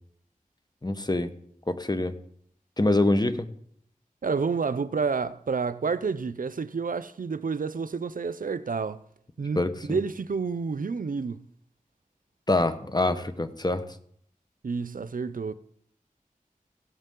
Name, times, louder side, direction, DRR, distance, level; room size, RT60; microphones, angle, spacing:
voice 1, 0.8-1.3 1.7-2.2 2.8-3.5 9.6-10.0 12.5-13.8, left 2 dB, 30° left, 1.0 m, -25 dB
voice 2, 4.2-9.0 9.4-9.6 9.9-11.4 14.6-15.5, right 5 dB, 75° right, 0.5 m, -29 dB
16.0 x 8.1 x 3.8 m
wide cardioid pair, 50°, 14 cm